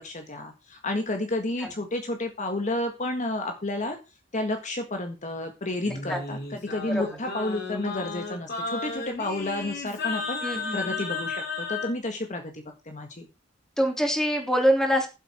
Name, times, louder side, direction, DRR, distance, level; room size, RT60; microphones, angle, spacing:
voice 1, 0.0-4.0 4.3-10.4 10.7-13.3, left 2 dB, 40° left, 5 dB, 1.7 m, -31 dB
Singing, 5.8-11.9, left 4 dB, 60° left, 5.2 m, -33 dB
voice 2, 5.8-6.2 6.9-7.0 10.4-11.0 13.8-15.1, equal, 5° left, 2 dB, 3.1 m, -25 dB
14.5 x 8.0 x 4.4 m, 0.29 s
head